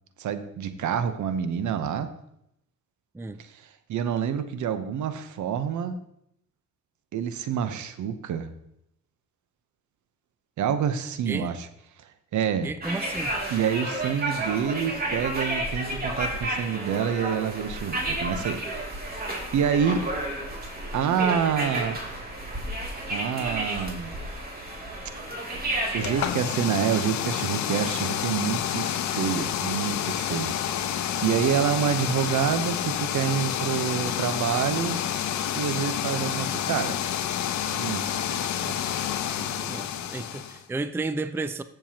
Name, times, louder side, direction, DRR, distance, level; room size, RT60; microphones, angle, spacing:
voice 1, 0.2-2.1 3.9-6.0 7.1-8.5 10.6-11.6 12.3-12.7 13.5-19.0 19.5-20.1 20.9-22.0 23.1-24.2 25.9-30.5 30.8-35.0 35.5-37.0 37.7-38.8 39.4-39.5, right 8 dB, 75° right, 0.9 m, -27 dB
voice 2, 12.6-13.3 39.4-41.6, right 3 dB, 10° right, 0.4 m, -33 dB
sound 1, 12.8-26.3, right 1 dB, 30° right, 2.6 m, -31 dB
sound 2, 26.0-40.6, left 10 dB, 70° left, 0.8 m, -29 dB
15.5 x 6.9 x 2.9 m
cardioid pair, 90°, 30 cm